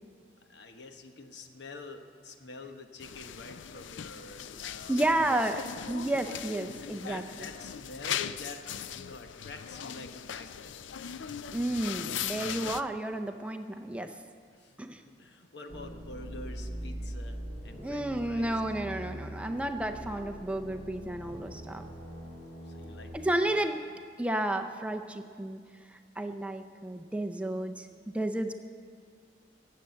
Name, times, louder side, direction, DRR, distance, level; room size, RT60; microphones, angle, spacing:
voice 1, 0.4-5.7 6.8-8.6 8.9-10.7 14.6-17.4 17.6-18.6 22.6-23.5 23.9-24.0, left 3 dB, 70° left, 6 dB, 1.1 m, -47 dB
sound 1, 3.0-12.8, left 9 dB, 85° left, 0.4 m, -39 dB
voice 2, 4.9-5.6 5.9-7.2 11.5-14.1 14.8-15.0 17.8-21.9 23.1-23.8 24.2-25.6 25.9-27.9 28.1-28.5, right 1 dB, 5° right, 5 dB, 0.5 m, -31 dB
sound 2, 15.7-23.1, right 1 dB, 40° left, 4.7 m, -42 dB
18.0 x 7.6 x 7.7 m, 2.1 s
head